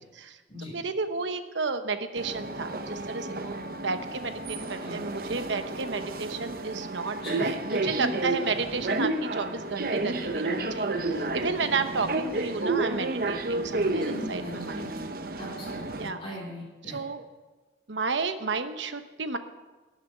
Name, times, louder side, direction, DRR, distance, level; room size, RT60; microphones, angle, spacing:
voice 1, 0.7-3.5 3.8-14.9 16.0-16.2 16.9-17.2 17.9-19.4, right 4 dB, 80° right, 9 dB, 1.0 m, -32 dB
sound 1, 2.2-16.1, right 2 dB, 50° right, 0.8 m, -31 dB
voice 2, 7.2-7.9 13.8-14.9 15.4-17.0, left 1 dB, 30° left, -4 dB, 3.0 m, -40 dB
13.5 x 7.2 x 10.0 m, 1.3 s
head